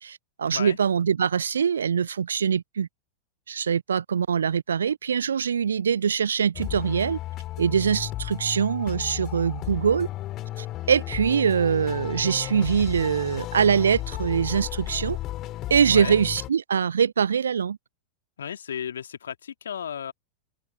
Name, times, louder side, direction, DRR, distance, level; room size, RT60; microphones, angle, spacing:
voice 1, 0.0-2.9 3.5-7.2 7.6-10.1 10.6-15.2 15.7-17.8, right 7 dB, 70° right, 0.3 m, -23 dB
sound 1, 6.5-16.5, left 15 dB, 35° left, 2.5 m, -34 dB
voice 2, 15.9-16.2 18.4-20.1, left 8 dB, 65° left, 2.5 m, -34 dB
open air
figure-of-eight pair, 90°, 0 cm